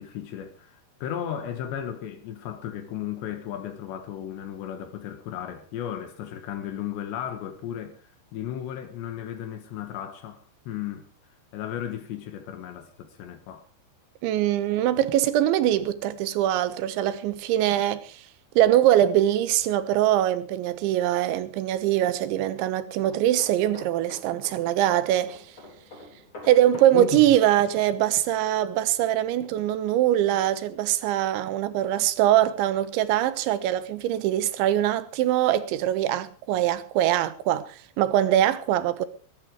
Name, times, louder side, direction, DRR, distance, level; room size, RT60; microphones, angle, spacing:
voice 1, 0.0-11.1 11.5-13.6 26.9-27.1, left 10 dB, 75° left, 3.5 m, -35 dB
voice 2, 14.2-18.2 18.6-25.4 26.5-39.1, right 12 dB, 90° right, 3.5 m, -23 dB
sound 1, 22.9-30.4 30.7-31.0, left 1 dB, 30° left, 4.3 m, -48 dB
21.5 x 10.5 x 4.8 m
omnidirectional pair, 5.2 m